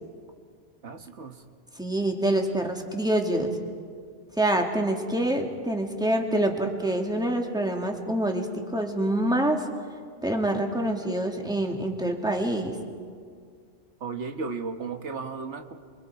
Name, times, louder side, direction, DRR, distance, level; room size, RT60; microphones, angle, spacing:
voice 1, 0.8-1.4 12.2-12.4 14.0-15.7, right 4 dB, 70° right, 6 dB, 1.7 m, -35 dB
voice 2, 1.8-3.6 4.4-9.7 10.2-12.8, right 1 dB, 5° right, 2 dB, 2.0 m, -26 dB
28.5 x 24.0 x 4.7 m, 2.1 s
omnidirectional pair, 1.2 m